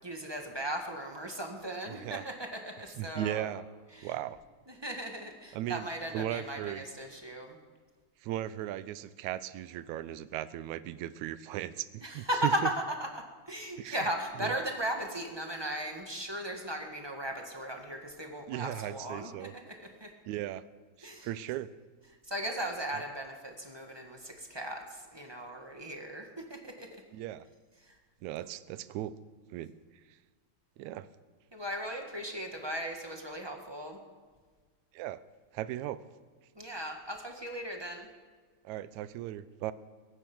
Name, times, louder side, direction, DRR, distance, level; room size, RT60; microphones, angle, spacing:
voice 1, 0.0-3.5 3.9-4.2 4.7-7.6 12.0-12.6 13.0-19.7 20.0-20.1 21.0-21.3 22.2-26.9 27.8-28.0 31.5-34.0 36.5-38.1, right 1 dB, 20° right, 2 dB, 0.7 m, -37 dB
voice 2, 1.9-2.2 3.0-3.6 4.0-4.4 5.5-5.9 6.1-6.8 8.2-12.5 13.8-14.0 14.4-14.5 18.5-19.5 20.3-20.6 21.0-21.7 27.1-27.5 28.2-29.2 29.5-29.7 30.8-31.1 34.9-35.2 35.5-36.0 38.6-39.7, right 13 dB, 75° right, 15 dB, 1.9 m, -37 dB
22.0 x 10.0 x 6.2 m, 1.5 s
omnidirectional pair, 3.5 m